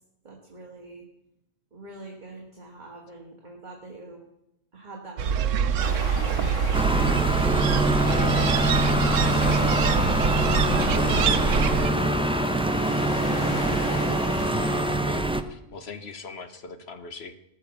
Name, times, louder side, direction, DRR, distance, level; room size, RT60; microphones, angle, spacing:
voice 1, 0.2-1.1 1.7-4.3 4.7-6.6 7.0-10.2 10.9-13.7, right 3 dB, 35° right, 0 dB, 1.9 m, -43 dB
sound 1, 5.2-11.9, right 7 dB, 85° right, 1.1 m, -25 dB
sound 2, 5.8-15.0, left 2 dB, 75° left, 2.4 m, -34 dB
sound 3, 6.7-15.4, right 1 dB, 5° right, 0.4 m, -24 dB
voice 2, 15.0-17.3, left 4 dB, 55° left, 9 dB, 1.4 m, -41 dB
19.5 x 6.6 x 7.0 m, 0.84 s
omnidirectional pair, 1.3 m